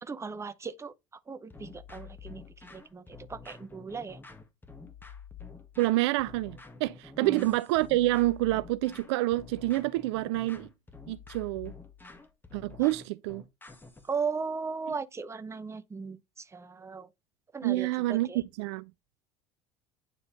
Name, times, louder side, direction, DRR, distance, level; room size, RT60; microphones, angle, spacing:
voice 1, 0.0-0.9 1.3-4.2 7.2-7.5 12.8-12.9 14.0-17.1 17.5-18.4, right 5 dB, 15° right, 0.8 m, -37 dB
sound 1, 1.5-14.2, left 5 dB, 10° left, 1.7 m, -48 dB
voice 2, 5.8-10.7 11.1-11.7 12.5-13.4 17.6-18.9, right 18 dB, 60° right, 0.4 m, -28 dB
9.7 x 4.1 x 3.9 m
figure-of-eight pair, 65°, 16 cm